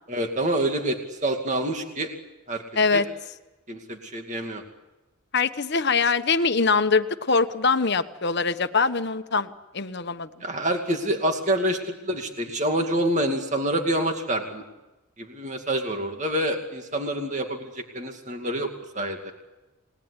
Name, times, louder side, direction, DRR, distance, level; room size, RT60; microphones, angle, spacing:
voice 1, 0.1-2.1 2.5-2.6 2.9-3.0 3.7-4.6 10.4-14.6 15.2-18.7 18.9-19.3, right 1 dB, 35° right, 4 dB, 2.4 m, -27 dB
voice 2, 5.3-10.3, left 4 dB, 50° left, 9 dB, 1.2 m, -23 dB
29.0 x 19.5 x 9.9 m, 1.1 s
head